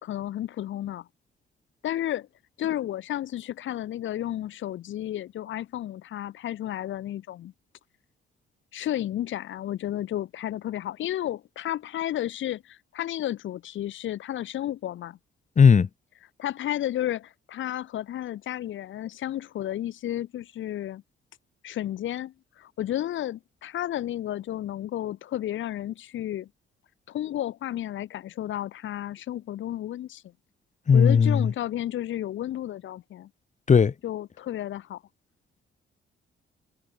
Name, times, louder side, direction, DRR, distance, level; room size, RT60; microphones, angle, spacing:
voice 1, 0.0-1.1 1.8-2.3 2.6-7.5 8.7-15.2 16.4-21.0 21.6-26.5 27.1-30.2 30.9-33.3 34.0-35.0, left 12 dB, 75° left, 2.9 m, -32 dB
voice 2, 15.6-15.9 30.9-31.5 33.7-33.9, left 6 dB, 40° left, 1.4 m, -17 dB
cardioid pair, 90°, 20 cm